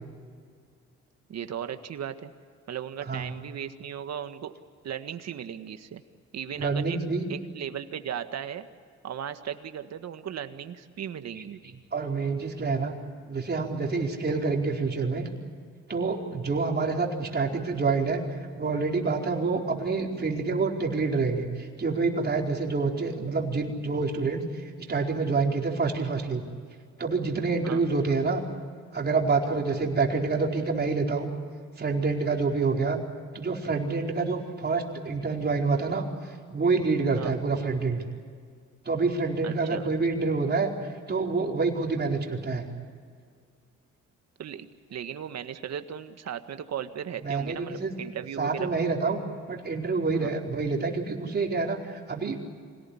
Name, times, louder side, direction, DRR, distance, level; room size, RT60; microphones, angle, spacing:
voice 1, 1.3-2.3 2.7-4.5 4.8-6.0 6.3-7.0 7.3-8.7 9.0-11.6 27.6-27.8 37.1-37.3 39.4-39.9 44.4-48.7 50.1-50.3, right 9 dB, 60° right, 9 dB, 1.7 m, -36 dB
voice 2, 6.5-7.3 11.9-12.9 13.3-15.3 15.9-18.2 18.5-26.4 27.0-28.4 28.9-31.3 31.8-33.0 33.3-38.0 38.8-40.7 41.1-42.7 47.2-47.9 48.4-49.2 49.5-52.6, right 4 dB, 35° right, 0 dB, 4.6 m, -27 dB
26.0 x 18.0 x 10.0 m, 2.1 s
cardioid pair, 90°, 30 cm